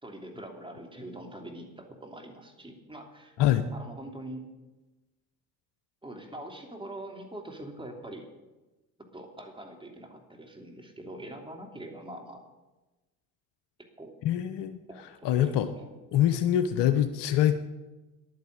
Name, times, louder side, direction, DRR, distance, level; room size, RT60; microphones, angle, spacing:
voice 1, 0.0-3.3 3.7-4.4 6.0-8.3 9.1-12.4 13.8-14.2 14.9-15.9, right 1 dB, 10° right, 2 dB, 3.0 m, -43 dB
voice 2, 14.2-14.8 15.2-15.7 16.1-17.6, left 11 dB, 55° left, 11 dB, 0.9 m, -24 dB
11.0 x 9.5 x 7.8 m, 1.1 s
hypercardioid pair, 55°, 49 cm